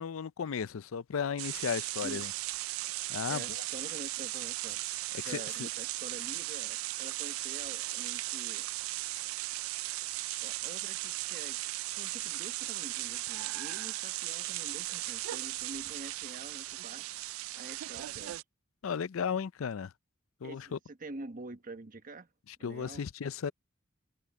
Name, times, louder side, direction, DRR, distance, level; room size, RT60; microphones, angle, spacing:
voice 1, 0.0-2.3 3.1-3.6 5.1-5.7 18.8-19.9 20.4-20.8 22.6-23.5, left 6 dB, 80° left, 0.5 m, -35 dB
sound 1, 1.4-18.4, right 18 dB, 85° right, 0.3 m, -37 dB
voice 2, 2.0-2.4 3.3-4.8 5.2-8.7 10.4-11.6 11.9-17.1 17.5-18.3 20.4-22.3 22.6-23.0, right 2 dB, 40° right, 1.1 m, -46 dB
head